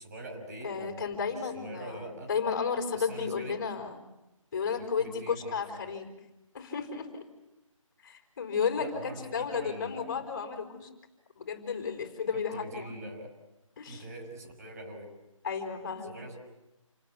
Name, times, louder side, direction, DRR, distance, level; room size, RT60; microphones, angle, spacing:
voice 1, 0.0-1.0 1.3-2.3 2.9-3.6 5.0-5.9 8.8-10.2 12.3-13.3 13.9-15.1 16.0-16.4, right 1 dB, 30° right, 3 dB, 5.8 m, -44 dB
voice 2, 0.6-4.0 4.5-6.1 6.5-7.2 8.0-10.9 11.4-13.0 13.8-14.0 15.4-16.1, left 6 dB, 30° left, 5 dB, 4.6 m, -33 dB
28.5 x 19.0 x 9.8 m, 0.94 s
figure-of-eight pair, 165°, 17 cm